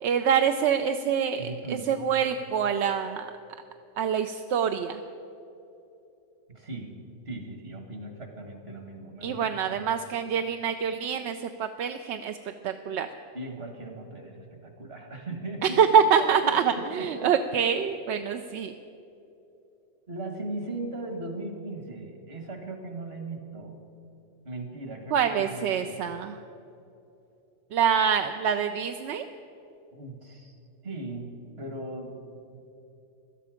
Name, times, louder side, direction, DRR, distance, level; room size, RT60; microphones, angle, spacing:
voice 1, 0.0-3.3 4.0-5.0 9.2-12.4 12.6-13.1 15.6-18.7 25.1-26.4 27.7-29.3, right 7 dB, 70° right, 7 dB, 0.8 m, -25 dB
voice 2, 1.4-1.9 6.5-6.9 7.3-9.4 9.7-9.9 13.3-17.3 20.1-23.7 24.4-26.0 29.9-30.6 30.8-32.1 32.5-32.7, right 2 dB, 50° right, 4 dB, 2.0 m, -38 dB
17.5 x 12.5 x 5.0 m, 2.8 s
omnidirectional pair, 1.3 m